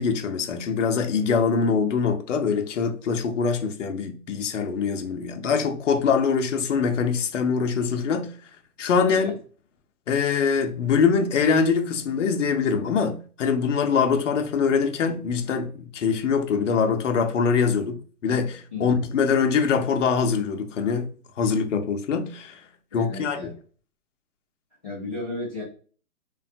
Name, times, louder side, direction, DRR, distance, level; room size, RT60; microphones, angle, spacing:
voice 1, 0.0-8.3 8.8-9.4 10.1-21.1 21.4-22.6 22.9-23.4, left 5 dB, 55° left, 0.6 m, -23 dB
voice 2, 22.9-23.5 24.8-25.6, left 2 dB, 10° left, 0.5 m, -34 dB
3.1 x 2.2 x 2.7 m
hypercardioid pair, 155°, 45 cm